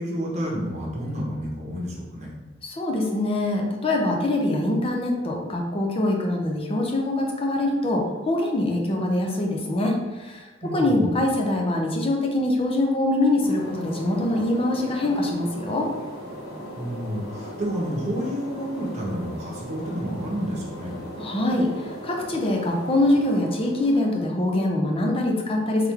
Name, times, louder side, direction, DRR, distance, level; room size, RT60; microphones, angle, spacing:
voice 1, 0.0-2.3 10.6-11.1 16.7-21.0, equal, 35° right, -3 dB, 0.9 m, -30 dB
voice 2, 2.6-15.9 21.2-25.9, left 1 dB, 30° left, 1 dB, 0.6 m, -24 dB
sound 1, 13.4-24.5, equal, 55° left, 1.4 m, -38 dB
3.3 x 3.2 x 3.6 m, 1.2 s
head